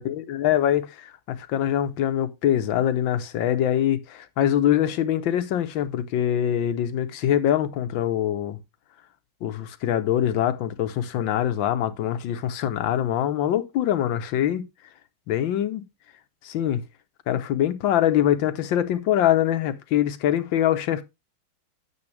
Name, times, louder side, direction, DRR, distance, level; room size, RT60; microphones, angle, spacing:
voice 1, 0.0-8.6 9.4-14.6 15.3-15.8 16.4-16.8 17.3-21.0, left 11 dB, 70° left, 1.6 m, -24 dB
9.8 x 7.5 x 3.3 m
omnidirectional pair, 2.2 m